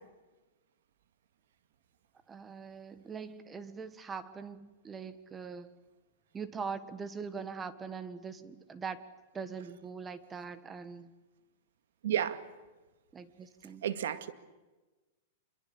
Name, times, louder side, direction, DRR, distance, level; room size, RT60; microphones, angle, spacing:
voice 1, 2.3-5.7 6.3-9.0 9.3-11.1 13.1-13.9, right 5 dB, 15° right, 1.4 m, -42 dB
voice 2, 12.0-12.4 13.8-14.3, right 10 dB, 80° right, 2.0 m, -31 dB
26.5 x 23.0 x 8.4 m
supercardioid pair, 145°, 0 cm